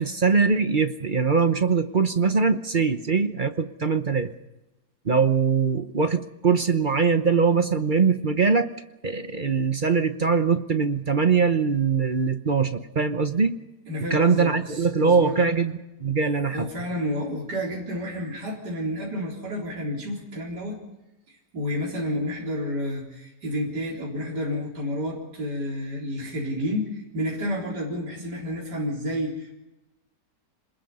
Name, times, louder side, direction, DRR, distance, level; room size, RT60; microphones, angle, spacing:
voice 1, 0.0-4.3 5.0-8.7 9.0-13.6 14.1-15.7 16.0-16.7, right 5 dB, 35° right, 9 dB, 0.9 m, -22 dB
voice 2, 13.9-15.5 16.4-20.8 21.3-29.6, equal, 65° right, -3 dB, 4.5 m, -30 dB
27.0 x 21.0 x 5.6 m, 0.98 s
omnidirectional pair, 1.9 m